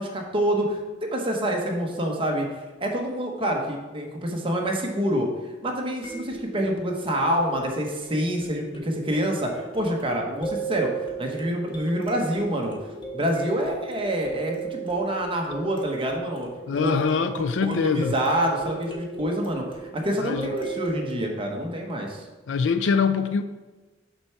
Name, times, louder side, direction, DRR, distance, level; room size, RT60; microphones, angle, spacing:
voice 1, 0.0-2.5 2.8-5.3 5.6-10.9 11.2-12.7 13.1-17.2 17.6-19.6 19.9-22.2, equal, 30° right, 1 dB, 1.1 m, -27 dB
sound 1, 6.0-21.2, right 5 dB, 30° left, 1.2 m, -37 dB
voice 2, 16.7-18.1 20.2-20.5 22.5-23.4, left 5 dB, 80° left, 10 dB, 0.4 m, -24 dB
6.7 x 4.6 x 5.8 m, 1.2 s
head